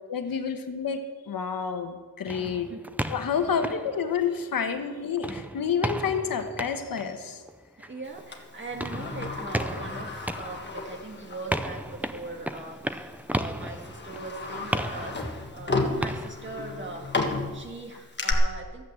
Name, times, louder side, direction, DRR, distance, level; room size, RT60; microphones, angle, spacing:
voice 1, 0.1-2.7 3.1-7.4, left 6 dB, 70° left, 7 dB, 1.2 m, -29 dB
sound 1, 2.3-4.8 5.2-16.3, right 1 dB, 5° right, 0.4 m, -35 dB
voice 2, 2.4-2.8 3.4-3.9 7.9-18.9, right 3 dB, 30° right, 2 dB, 1.9 m, -40 dB
Sliding door, 8.3-11.5 11.9-12.0 12.9-13.1 13.6-18.3, left 3 dB, 30° left, 1.4 m, -33 dB
13.0 x 8.8 x 7.6 m, 1.4 s
wide cardioid pair, 155°, 36 cm